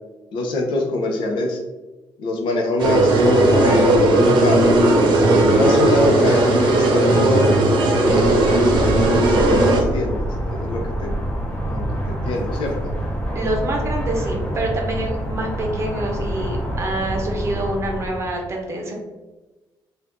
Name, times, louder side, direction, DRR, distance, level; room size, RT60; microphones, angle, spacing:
voice 1, 0.3-1.6 2.2-3.9 4.4-4.7 5.4-7.5 7.9-9.0 9.3-11.2 11.7-12.7, left 2 dB, 90° left, 1 dB, 0.6 m, -24 dB
sound 1, 2.8-9.8, right 1 dB, 75° right, 0.7 m, -16 dB
sound 2, 8.0-18.3, right 1 dB, 10° left, 0.6 m, -26 dB
voice 2, 13.3-18.9, right 1 dB, 35° right, 1 dB, 0.7 m, -26 dB
2.6 x 2.4 x 3.5 m, 1.1 s
cardioid pair, 150°, 8 cm